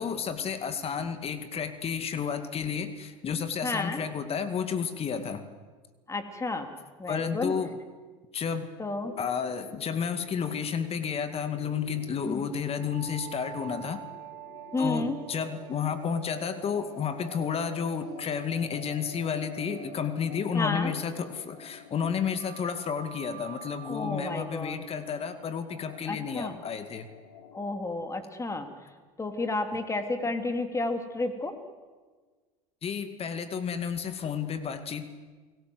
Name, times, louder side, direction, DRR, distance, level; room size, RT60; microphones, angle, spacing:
voice 1, 0.0-5.4 7.1-7.8 8.3-8.7 9.2-14.0 14.8-27.1 32.8-35.0, left 6 dB, 35° left, 10 dB, 2.2 m, -31 dB
voice 2, 3.6-4.0 6.1-6.7 7.0-7.5 8.8-9.1 12.2-12.4 14.7-15.2 20.5-20.9 23.8-24.8 26.1-26.6 27.5-28.7 29.2-31.6, left 2 dB, 15° left, 7 dB, 3.2 m, -31 dB
sound 1, 8.9-27.7, left 7 dB, 75° left, 3.4 m, -51 dB
sound 2, 12.6-21.4 22.3-27.1, right 13 dB, 65° right, 1.7 m, -48 dB
29.5 x 18.5 x 8.0 m, 1.4 s
hypercardioid pair, 95°, 17 cm